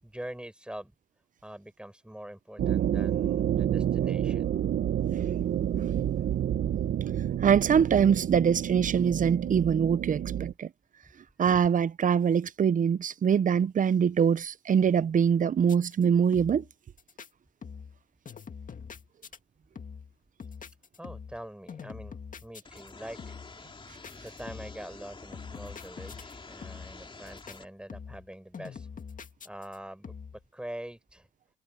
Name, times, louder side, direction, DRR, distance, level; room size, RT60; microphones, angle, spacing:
voice 1, 0.0-0.9 1.4-4.5 20.4-20.5 21.0-23.4 24.2-28.9 29.4-30.1 30.5-31.3, right 1 dB, 5° right, 6.4 m, -44 dB
sound 1, 2.6-10.5, right 10 dB, 60° right, 1.2 m, -29 dB
voice 2, 7.4-10.7 11.4-16.6, right 7 dB, 40° right, 0.7 m, -24 dB
sound 2, 15.6-16.0 16.3-16.7 17.0-17.3 17.6-18.0 18.2-19.4 19.7-20.1 20.4-21.4 21.7-22.9 23.2-23.6 24.0-24.8 25.3-26.3 26.6-27.0 27.3-27.6 27.9-28.3 28.5-29.8 30.0-30.4, left 6 dB, 40° left, 2.0 m, -44 dB
sound 3, 22.6-27.6, left 3 dB, 25° left, 3.2 m, -48 dB
cardioid pair, 90°, 20 cm